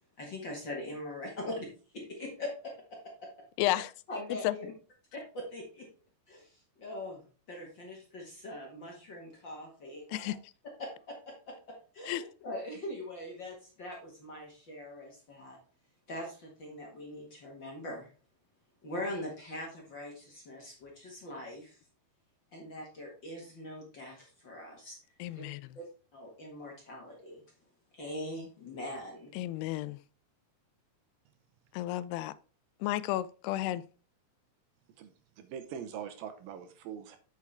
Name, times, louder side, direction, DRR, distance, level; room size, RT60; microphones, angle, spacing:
voice 1, 0.2-1.7 1.9-3.3 3.7-3.8 4.1-4.7 5.1-5.9 6.3-10.3 10.8-15.6 16.1-18.1 18.8-21.8 22.5-25.0 25.3-25.4 25.7-25.8 26.1-27.4 27.9-29.3, left 1 dB, 50° left, 1.5 m, -42 dB
voice 2, 3.6-3.9 4.4-4.5 10.1-10.4 12.1-12.2 25.2-25.7 29.4-30.0 31.7-32.3 32.8-33.8, left 15 dB, 90° left, 2.6 m, -32 dB
voice 3, 35.0-37.2, right 8 dB, 75° right, 2.5 m, -43 dB
8.3 x 6.5 x 3.4 m
omnidirectional pair, 4.6 m